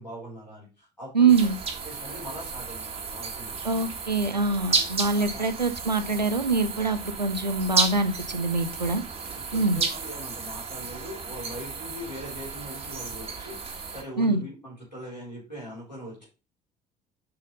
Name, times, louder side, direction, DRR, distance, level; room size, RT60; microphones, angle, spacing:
voice 1, 0.0-1.5 1.7-3.6 4.6-4.8 5.1-5.5 9.3-13.6 13.9-16.3, equal, 90° left, -6 dB, 4.1 m, -41 dB
voice 2, 1.1-1.6 3.6-9.0 9.5-9.8 14.2-14.4, right 4 dB, 90° right, 11 dB, 0.6 m, -24 dB
sound 1, 1.3-14.0, right 5 dB, 30° right, 1.6 m, -33 dB
6.6 x 5.6 x 3.9 m, 0.33 s
figure-of-eight pair, 55°, 21 cm